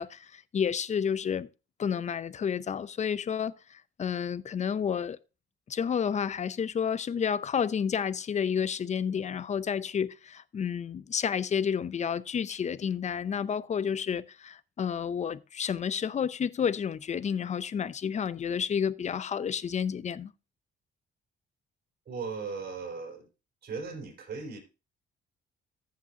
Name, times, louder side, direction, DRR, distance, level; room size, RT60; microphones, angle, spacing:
voice 1, 0.0-1.5 1.8-5.2 5.7-20.3, left 7 dB, 35° left, 0.5 m, -30 dB
voice 2, 22.1-23.3 23.6-24.6, right 5 dB, 55° right, 4.5 m, -37 dB
14.0 x 7.6 x 2.8 m
cardioid pair, 90°, 20 cm